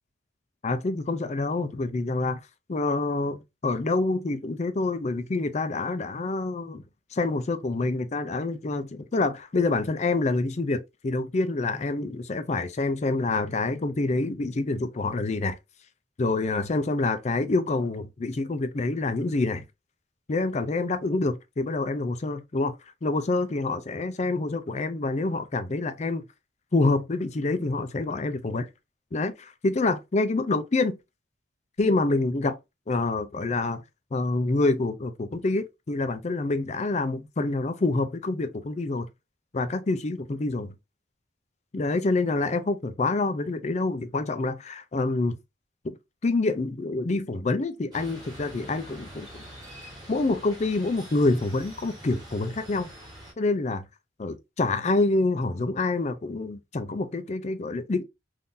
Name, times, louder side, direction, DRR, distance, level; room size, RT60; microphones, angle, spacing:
voice 1, 0.6-2.4 2.7-6.8 7.1-15.6 16.2-19.6 20.3-22.7 23.0-26.3 26.7-28.7 29.1-31.0 31.8-32.6 32.9-33.8 34.1-39.1 39.5-40.7 41.7-45.4 45.8-46.0 46.2-49.3 50.1-52.9 53.4-53.8 54.2-58.0, left 3 dB, 35° left, 0.4 m, -27 dB
sound 1, 47.9-53.3, right 1 dB, 20° right, 1.8 m, -45 dB
3.7 x 2.6 x 2.5 m
head